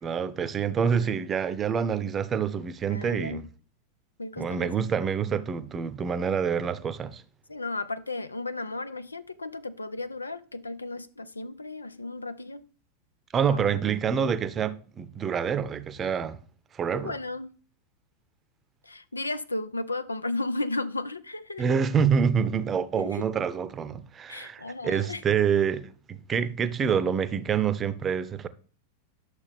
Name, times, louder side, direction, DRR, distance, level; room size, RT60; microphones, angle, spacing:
voice 1, 0.0-3.5 4.4-7.2 13.3-16.4 16.7-17.1 21.6-28.5, right 7 dB, 25° right, 0.7 m, -27 dB
voice 2, 2.9-3.4 4.2-4.7 7.5-12.6 13.5-13.7 16.9-17.5 18.9-21.6 23.0-23.2 24.3-25.2, left 2 dB, 80° left, 0.5 m, -34 dB
11.0 x 6.7 x 3.4 m
figure-of-eight pair, 90°, 0 cm